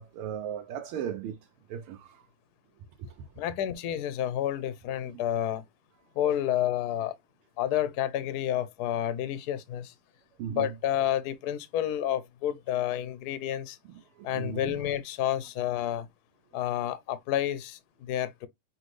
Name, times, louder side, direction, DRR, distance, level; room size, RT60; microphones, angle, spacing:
voice 1, 0.0-1.4 1.7-2.2 3.0-3.1 10.4-10.7 14.2-14.8, right 9 dB, 90° right, 1.5 m, -36 dB
voice 2, 3.4-5.6 6.2-7.1 7.6-9.9 10.5-13.8 14.2-16.1 16.5-18.5, left 11 dB, 70° left, 0.9 m, -30 dB
6.1 x 2.6 x 3.1 m
omnidirectional pair, 2.4 m